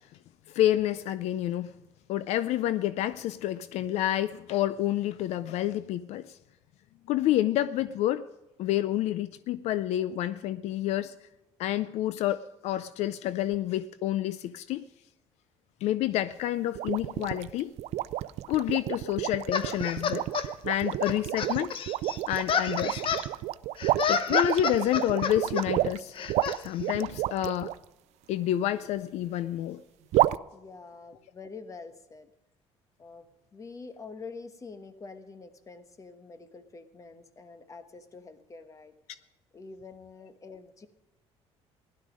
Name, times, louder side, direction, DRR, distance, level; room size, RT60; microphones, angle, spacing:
voice 1, 0.5-1.7 2.1-6.3 7.1-8.3 8.6-11.1 11.6-14.8 15.8-17.7 18.5-20.3 20.6-21.7 22.3-23.1 24.1-26.1 26.6-27.7 28.3-29.8, left 13 dB, 75° left, 0.5 m, -28 dB
sound 1, 16.7-27.7 30.1-30.4, right 15 dB, 75° right, 0.4 m, -30 dB
sound 2, 19.5-20.5 21.1-23.3 23.8-25.6 26.1-26.6, left 7 dB, 50° left, 1.0 m, -30 dB
voice 2, 30.5-32.3 33.0-38.9 39.5-40.9, left 4 dB, 30° left, 1.3 m, -46 dB
16.0 x 11.5 x 5.1 m
cardioid pair, 115°, 11 cm